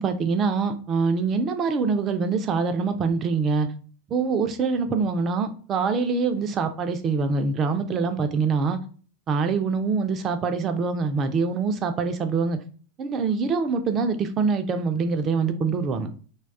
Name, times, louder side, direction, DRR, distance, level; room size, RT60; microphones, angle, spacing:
voice 1, 0.0-3.7 4.1-8.8 9.3-12.6 13.0-16.1, right 4 dB, 30° right, 0.4 m, -24 dB
2.2 x 2.2 x 3.5 m
figure-of-eight pair, 90°, 0 cm